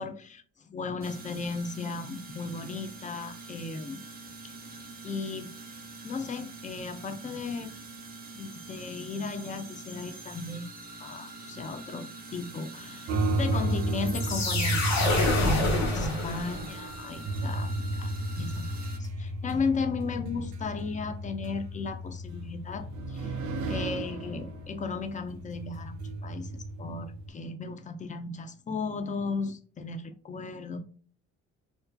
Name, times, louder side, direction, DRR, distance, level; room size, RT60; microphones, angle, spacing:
voice 1, 0.0-4.0 4.4-5.5 6.0-7.7 8.3-10.7 11.0-18.7 19.0-23.4 23.7-30.8, left 4 dB, 25° left, 0.4 m, -36 dB
sound 1, 1.0-19.0, right 3 dB, 30° right, 0.6 m, -45 dB
sound 2, 13.1-27.3, right 2 dB, 70° right, 0.6 m, -33 dB
sound 3, 14.1-16.9, left 2 dB, 65° left, 1.0 m, -27 dB
2.5 x 2.4 x 2.2 m
cardioid pair, 90°, 30 cm